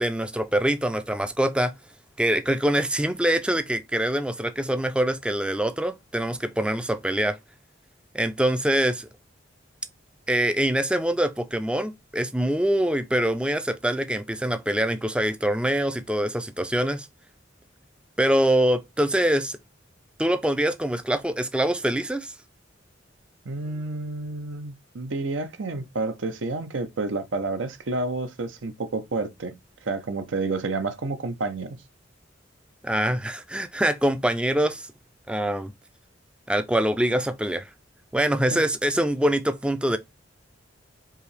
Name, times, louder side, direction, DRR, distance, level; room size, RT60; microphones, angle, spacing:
voice 1, 0.0-1.7 2.2-7.4 8.1-9.1 10.3-17.1 18.2-19.6 20.2-22.3 32.8-34.8 35.3-35.7 36.5-37.6 38.1-40.0, right 1 dB, 5° right, 0.4 m, -24 dB
voice 2, 23.5-29.5 29.8-31.8 38.5-38.6, right 3 dB, 75° right, 0.7 m, -30 dB
4.7 x 2.9 x 3.2 m
head